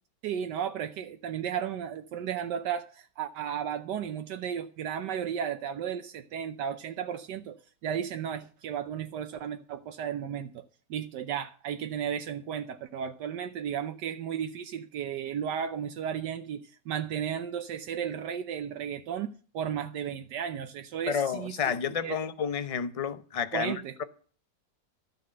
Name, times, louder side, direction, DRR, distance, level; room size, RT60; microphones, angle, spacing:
voice 1, 0.2-21.6 22.0-22.2 23.5-24.0, right 8 dB, 75° right, 1.4 m, -34 dB
voice 2, 21.1-24.0, left 7 dB, 60° left, 0.3 m, -31 dB
13.0 x 6.8 x 7.7 m
omnidirectional pair, 1.9 m